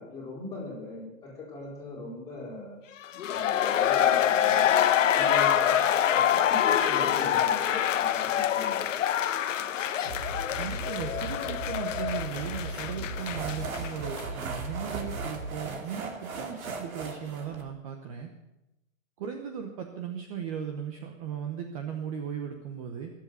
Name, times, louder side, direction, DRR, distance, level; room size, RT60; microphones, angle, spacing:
voice 1, 0.0-2.8 3.3-4.7 5.1-5.8 6.1-8.9, left 2 dB, 10° left, -5 dB, 4.0 m, -40 dB
sound 1, 3.0-13.9 14.2-14.3, left 10 dB, 65° left, 1.0 m, -25 dB
sound 2, 10.0-15.5, right 2 dB, 60° right, 2.9 m, -38 dB
voice 2, 10.6-18.3 19.2-23.1, right 8 dB, 25° right, 4 dB, 0.9 m, -37 dB
sound 3, 10.7-17.6, right 4 dB, 85° right, 2.8 m, -40 dB
21.5 x 7.7 x 6.7 m, 0.94 s
hypercardioid pair, 165°, 41 cm